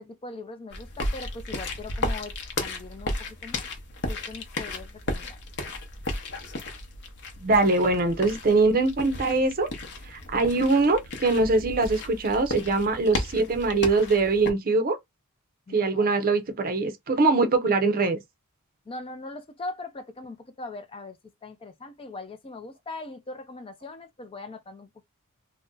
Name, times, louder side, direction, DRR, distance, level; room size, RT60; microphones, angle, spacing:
voice 1, 0.0-3.7 4.1-5.4 15.7-16.1 18.9-25.0, left 3 dB, 25° left, 0.4 m, -40 dB
sound 1, 0.7-14.5, left 2 dB, 50° left, 0.8 m, -34 dB
voice 2, 7.4-9.7 10.1-15.0 15.7-18.2, right 3 dB, 40° right, 0.6 m, -22 dB
2.6 x 2.1 x 3.6 m
head